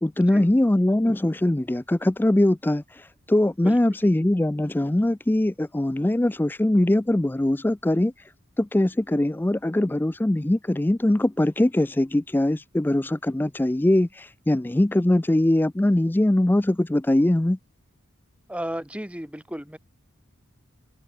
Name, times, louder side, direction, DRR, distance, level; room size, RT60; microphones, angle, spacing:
voice 1, 0.0-8.1 8.6-17.6, left 1 dB, 10° left, 0.3 m, -22 dB
voice 2, 18.5-19.8, equal, 5° right, 3.2 m, -33 dB
head